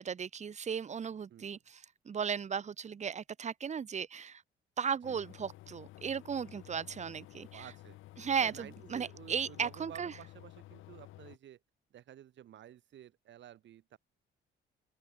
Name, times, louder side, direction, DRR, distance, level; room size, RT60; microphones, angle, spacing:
voice 1, 0.0-4.4 4.8-7.7 8.2-10.1, right 7 dB, 35° right, 0.8 m, -36 dB
sound 1, 5.0-11.4, left 16 dB, 85° left, 1.0 m, -53 dB
voice 2, 7.5-8.0 8.4-11.6 11.9-14.0, right 11 dB, 65° right, 1.4 m, -52 dB
open air
cardioid pair, 90°, 20 cm